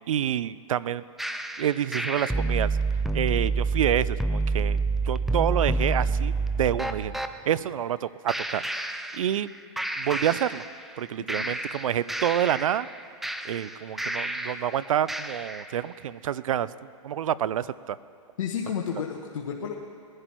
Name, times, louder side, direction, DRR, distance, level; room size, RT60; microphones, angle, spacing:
voice 1, 0.1-1.0 1.6-2.8 3.1-9.5 10.0-10.6 11.0-12.9 13.4-16.7 17.0-18.0, right 10 dB, 85° right, 18 dB, 0.5 m, -28 dB
sound 1, 1.2-7.3 8.3-9.5 9.8-11.0 11.3-14.7 15.1-15.7, right 3 dB, ahead, 0.4 m, -28 dB
voice 2, 11.2-11.5 18.4-19.7, left 7 dB, 75° left, 0 dB, 1.2 m, -32 dB
20.0 x 11.0 x 4.5 m, 2.5 s
hypercardioid pair, 135°, 17 cm